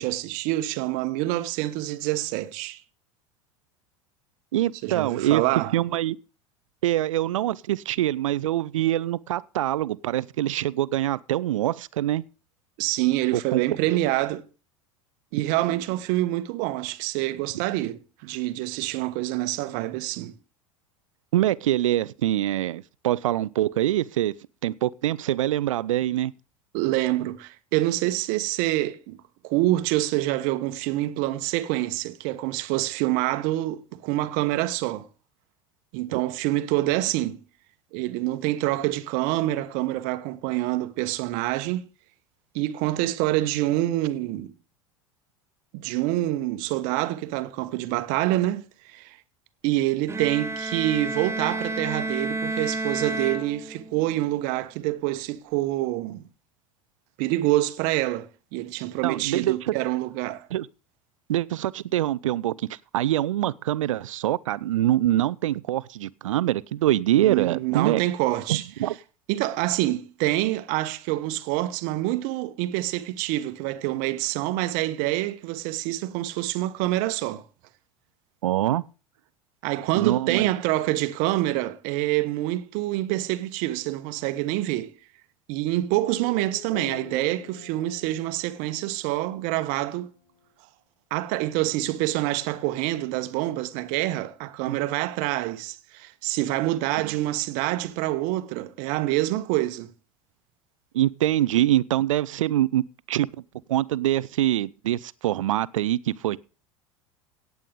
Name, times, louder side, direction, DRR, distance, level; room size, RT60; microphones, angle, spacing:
voice 1, 0.0-2.8 4.8-5.7 12.8-14.4 15.3-20.4 26.7-35.1 35.9-37.4 37.9-41.9 42.5-44.5 45.7-49.2 49.6-56.2 57.2-60.5 67.2-68.7 69.3-77.4 79.6-84.9 85.5-90.1 91.1-99.9, right 16 dB, 55° right, 1.1 m, -26 dB
voice 2, 4.5-5.4 5.7-6.2 6.8-12.2 13.3-13.6 13.9-14.0 17.5-17.6 21.3-24.3 24.6-26.3 36.1-36.2 59.0-59.7 60.5-60.7 61.3-62.5 62.9-68.0 68.5-68.9 78.4-78.9 79.9-80.5 94.7-94.8 100.9-103.3 103.7-106.4, right 13 dB, 70° right, 0.6 m, -24 dB
Bowed string instrument, 50.1-54.1, right 2 dB, 15° right, 1.6 m, -30 dB
sound 1, 86.0-90.4, left 6 dB, 55° left, 4.3 m, -45 dB
17.5 x 8.4 x 3.8 m
figure-of-eight pair, 75°, 17 cm